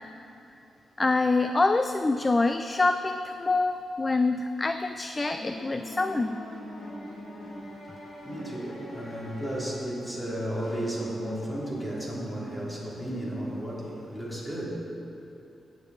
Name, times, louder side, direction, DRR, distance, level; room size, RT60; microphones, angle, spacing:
voice 1, 1.0-6.4, left 3 dB, 25° left, 9 dB, 0.3 m, -25 dB
sound 1, 5.3-10.2, left 1 dB, 85° left, 3.0 m, -42 dB
voice 2, 8.2-14.7, right 1 dB, 5° left, -5 dB, 2.8 m, -33 dB
17.5 x 7.3 x 4.1 m, 2.9 s
cardioid pair, 115°, 0 cm